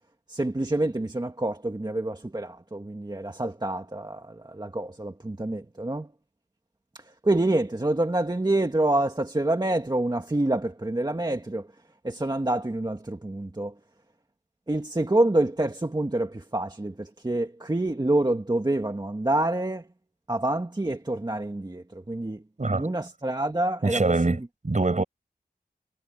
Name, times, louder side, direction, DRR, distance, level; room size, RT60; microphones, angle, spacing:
voice 1, 0.3-6.1 6.9-11.7 12.0-13.7 14.7-19.8 20.3-22.4 22.7-24.4 25.0-25.1, right 1 dB, 25° right, 1.8 m, -27 dB
voice 2, 23.8-25.0, right 3 dB, 50° right, 5.7 m, -24 dB
wide cardioid pair, 75°, 16 cm